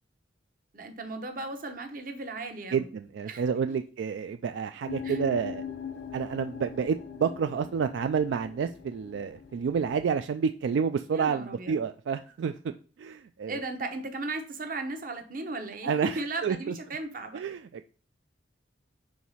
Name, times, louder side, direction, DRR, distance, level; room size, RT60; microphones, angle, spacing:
voice 1, 0.7-2.9 3.3-3.4 3.7-3.8 5.0-5.2 7.5-7.7 11.1-11.8 13.5-17.4, right 2 dB, 45° right, 7 dB, 0.8 m, -36 dB
voice 2, 2.7-5.6 6.1-12.5 13.0-13.6 15.8-16.7 17.3-17.6, right 6 dB, 70° right, 9 dB, 0.3 m, -29 dB
sound 1, 4.9-10.2, left 7 dB, 60° left, 0.5 m, -41 dB
4.7 x 4.0 x 5.5 m, 0.40 s
head